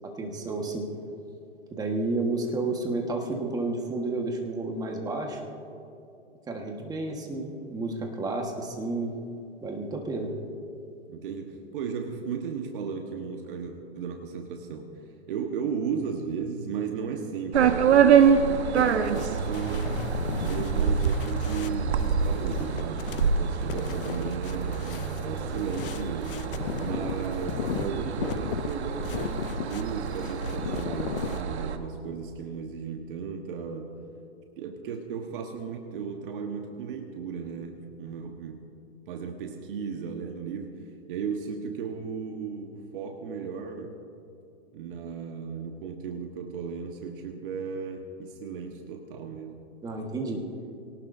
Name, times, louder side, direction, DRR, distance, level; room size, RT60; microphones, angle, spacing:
voice 1, 0.0-0.9 1.7-5.4 6.5-9.1 9.6-10.3 49.8-50.4, right 2 dB, 10° right, 2 dB, 1.5 m, -31 dB
voice 2, 11.1-15.0 15.3-20.1 20.4-26.5 26.8-33.9 34.6-38.6 39.1-40.7 41.1-44.0 44.7-49.6, right 6 dB, 50° right, 3 dB, 1.4 m, -35 dB
sound 1, 17.5-31.8, right 7 dB, 70° right, 1.3 m, -26 dB
sound 2, 18.7-31.4, left 10 dB, 50° left, 0.7 m, -37 dB
23.0 x 18.5 x 2.7 m, 2.7 s
hypercardioid pair, 145°, 34 cm